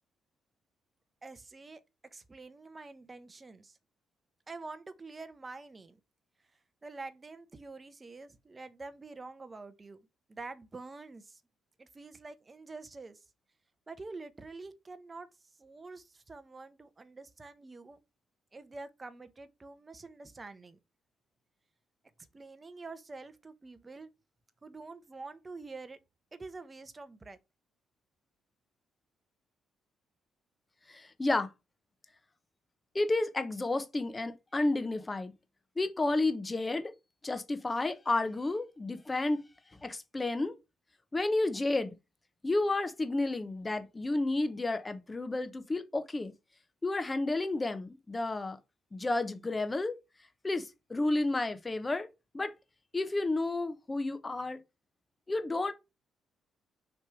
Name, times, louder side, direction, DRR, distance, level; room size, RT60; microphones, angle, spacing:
voice 1, 1.2-1.8 2.1-3.8 4.5-6.0 6.8-11.4 11.8-13.2 13.9-15.3 15.6-18.0 18.5-20.8 22.3-24.1 24.6-26.0 26.3-27.4, right 3 dB, 25° right, 0.9 m, -47 dB
voice 2, 30.9-31.5 32.9-35.3 35.8-36.9 37.2-39.4 39.8-40.5 41.1-41.9 42.4-46.3 46.8-48.6 48.9-49.9 50.4-52.1 52.3-52.5 52.9-54.6 55.3-55.7, left 2 dB, 20° left, 1.0 m, -31 dB
5.8 x 3.3 x 4.8 m
cardioid pair, 90°, 0 cm